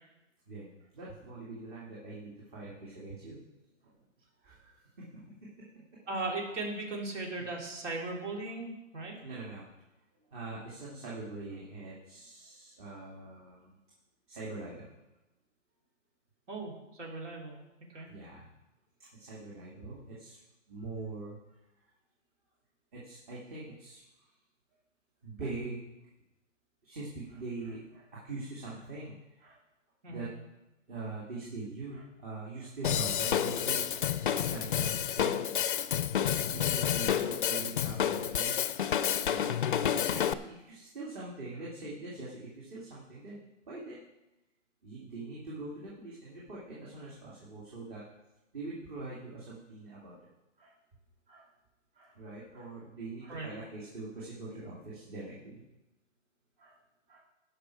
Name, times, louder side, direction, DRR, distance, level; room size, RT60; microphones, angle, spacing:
voice 1, 0.5-3.4 4.4-5.4 7.4-7.5 9.2-9.7 10.3-13.8 14.3-14.9 17.2-17.3 17.9-18.5 19.1-20.4 20.7-21.4 22.9-24.0 25.2-25.8 26.8-29.6 30.1-30.3 30.9-33.9 34.2-35.6 36.5-38.6 39.2-39.5 40.1-44.0 44.8-48.0 48.5-50.3 50.6-50.8 51.3-51.5 51.9-55.6 56.6-56.7 57.1-57.2, right 3 dB, 40° right, -6 dB, 2.7 m, -43 dB
voice 2, 6.1-9.2 16.5-17.6 17.9-18.1 30.0-30.3 53.3-53.5, right 2 dB, 65° right, -1 dB, 3.7 m, -37 dB
Drum kit / Drum, 32.8-40.3, left 9 dB, 45° left, 0.4 m, -29 dB
18.0 x 6.0 x 4.8 m, 0.98 s
hypercardioid pair, 160°, 38 cm